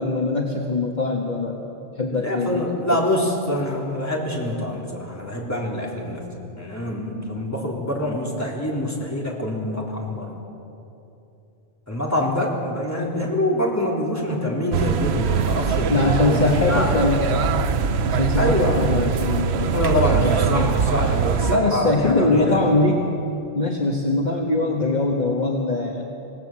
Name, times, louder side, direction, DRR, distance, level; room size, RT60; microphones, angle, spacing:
voice 1, 0.0-1.7 2.0-2.6 2.9-3.0 13.0-13.1 15.9-17.2 18.1-19.8 20.2-20.7 21.5-23.1 23.5-26.0, left 2 dB, 45° left, 0 dB, 1.6 m, -22 dB
voice 2, 2.1-6.3 6.6-10.4 11.9-16.9 18.4-18.9 19.7-22.6, left 1 dB, 15° left, -3 dB, 3.7 m, -25 dB
sound 1, 14.7-21.6, right 6 dB, 85° right, 1.0 m, -22 dB
26.5 x 17.5 x 7.5 m, 2.9 s
omnidirectional pair, 1.1 m